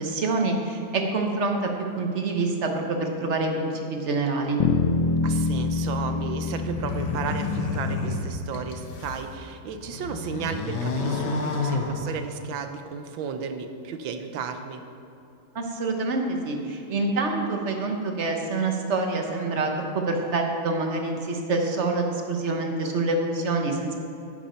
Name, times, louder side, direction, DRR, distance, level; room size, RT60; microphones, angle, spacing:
voice 1, 0.0-1.7 2.0-4.6 15.5-23.9, right 3 dB, 45° right, 3 dB, 1.1 m, -26 dB
sound 1, 4.6-9.0, left 4 dB, 85° left, 1.6 m, -27 dB
voice 2, 5.2-14.8, right 6 dB, 75° right, 7 dB, 1.5 m, -34 dB
sound 2, 6.6-9.3 9.7-12.6, left 3 dB, 60° left, 1.6 m, -30 dB
10.5 x 10.0 x 4.4 m, 2.9 s
omnidirectional pair, 2.2 m